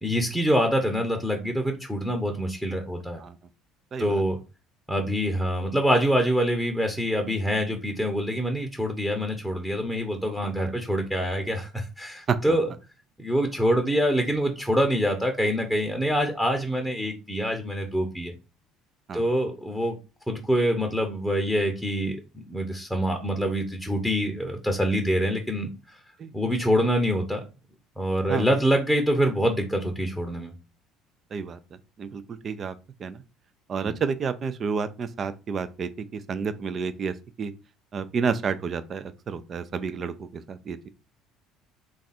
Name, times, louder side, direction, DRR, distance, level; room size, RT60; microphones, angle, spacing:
voice 1, 0.0-3.2 4.0-4.4 4.9-12.7 13.2-18.3 19.1-20.0 20.3-22.2 22.5-26.0 26.3-27.4 28.0-30.5 33.8-34.0, equal, ahead, 0.8 m, -25 dB
voice 2, 3.9-4.2 10.4-10.8 12.3-12.4 19.1-19.2 26.2-26.3 28.3-28.5 31.3-31.6 32.0-32.7 33.0-33.2 33.7-37.5 37.9-40.9, right 5 dB, 40° right, 0.5 m, -30 dB
3.3 x 2.4 x 4.1 m
hypercardioid pair, 60°, 0 cm